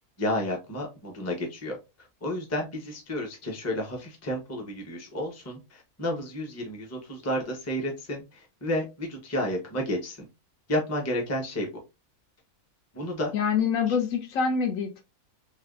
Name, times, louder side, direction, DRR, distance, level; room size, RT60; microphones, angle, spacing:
voice 1, 0.2-1.8 2.2-10.2 10.7-11.7 12.9-13.3 13.9-14.0, left 1 dB, 15° left, 0.5 m, -31 dB
voice 2, 13.3-15.0, left 6 dB, 70° left, 0.9 m, -25 dB
3.3 x 2.9 x 2.3 m
omnidirectional pair, 1.6 m